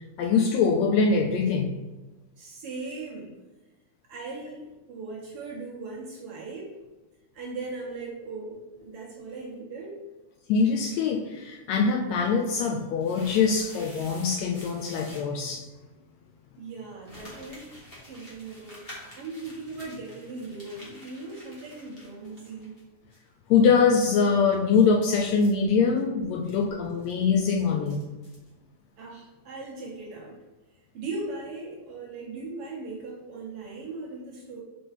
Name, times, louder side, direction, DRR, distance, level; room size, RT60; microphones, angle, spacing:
voice 1, 0.2-1.7 10.5-15.6 23.5-28.0, left 5 dB, 80° left, 3 dB, 1.6 m, -23 dB
voice 2, 2.4-3.3 4.1-6.7 7.3-10.0 16.6-17.8 18.0-18.9 19.2-22.8 29.0-30.4 30.9-34.6, right 3 dB, 60° right, -3 dB, 1.6 m, -38 dB
sound 1, 12.2-15.3 17.0-22.8 23.1-23.2 24.4-28.5, equal, 25° left, 1.5 m, -49 dB
5.7 x 5.3 x 4.0 m, 1.1 s
omnidirectional pair, 3.5 m